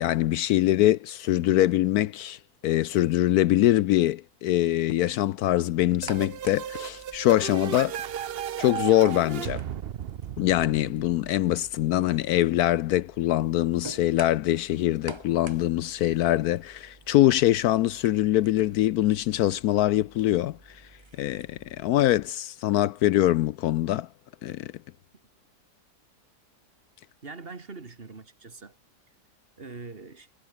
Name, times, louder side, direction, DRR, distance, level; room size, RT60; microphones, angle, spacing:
voice 1, 0.0-8.0 8.6-9.6 10.4-20.8 21.2-24.1 24.4-24.7, left 14 dB, 75° left, 1.0 m, -23 dB
sound 1, 5.8-22.3, right 2 dB, 15° right, 1.5 m, -49 dB
sound 2, 6.0-11.7, right 10 dB, 65° right, 0.6 m, -35 dB
voice 2, 27.2-28.8 29.6-30.3, right 4 dB, 35° right, 1.9 m, -42 dB
omnidirectional pair, 1.7 m